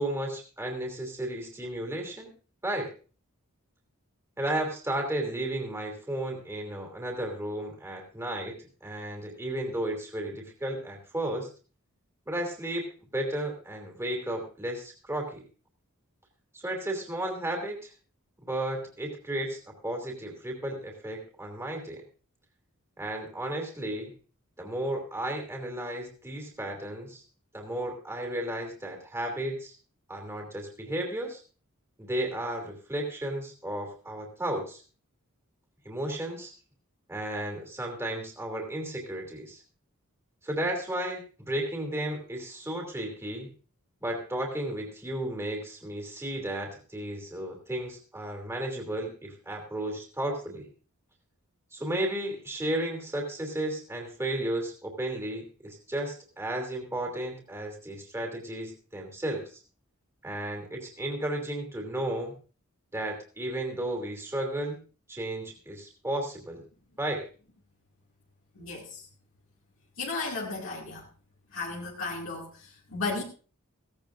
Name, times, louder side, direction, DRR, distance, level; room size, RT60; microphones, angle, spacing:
voice 1, 0.0-2.3 2.6-2.9 4.4-8.5 8.8-11.5 12.3-15.4 16.5-17.9 18.4-22.0 23.0-24.1 24.6-27.2 27.5-29.7 30.1-31.4 32.0-34.8 35.8-36.5 37.1-39.6 40.4-43.5 44.0-50.7 51.7-59.6 60.2-62.3 62.9-64.8 65.1-66.6 67.0-67.3, right 1 dB, 15° right, 1 dB, 2.9 m, -33 dB
voice 2, 68.5-69.1 70.0-71.0 71.5-73.2, left 3 dB, 65° left, -3 dB, 2.4 m, -34 dB
16.5 x 16.0 x 2.6 m, 0.37 s
head